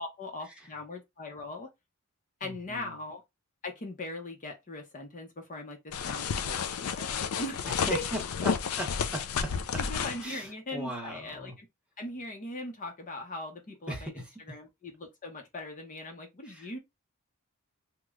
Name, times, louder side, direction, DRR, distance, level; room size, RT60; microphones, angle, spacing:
voice 1, 0.0-1.7 2.4-3.2 3.6-8.0 9.8-11.7 12.0-16.8, left 2 dB, 35° left, 0.7 m, -40 dB
voice 2, 2.4-2.9 7.9-9.8 10.2-11.6 13.9-14.6 16.4-16.8, equal, 5° right, 0.9 m, -39 dB
sound 1, 5.9-10.2, left 6 dB, 75° left, 0.4 m, -31 dB
3.0 x 2.2 x 3.5 m
head